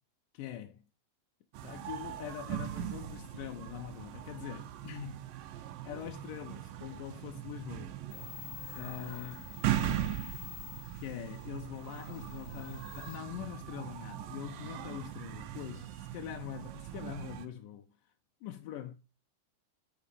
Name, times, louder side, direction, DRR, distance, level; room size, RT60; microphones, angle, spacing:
voice 1, 0.3-0.8 1.6-5.3 5.8-8.2 8.7-9.6 11.0-18.1 18.4-18.9, left 11 dB, 85° left, 2.6 m, -43 dB
sound 1, 1.5-17.4, right 11 dB, 90° right, 2.7 m, -40 dB
sound 2, 8.1-13.2, left 26 dB, 65° left, 1.5 m, -49 dB
8.9 x 6.6 x 6.9 m
omnidirectional pair, 3.8 m